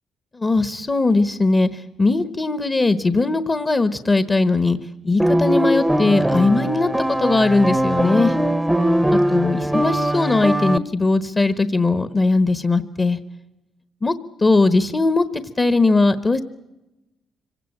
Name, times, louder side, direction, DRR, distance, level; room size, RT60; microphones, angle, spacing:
voice 1, 0.3-4.8 5.0-8.3 9.1-13.2 14.0-14.1 14.4-15.2 15.6-16.4, left 3 dB, 25° left, 12 dB, 1.2 m, -19 dB
sound 1, 5.2-10.8, right 1 dB, 5° right, 0.9 m, -20 dB
25.5 x 17.0 x 8.8 m, 1.0 s
cardioid pair, 90°, 0 cm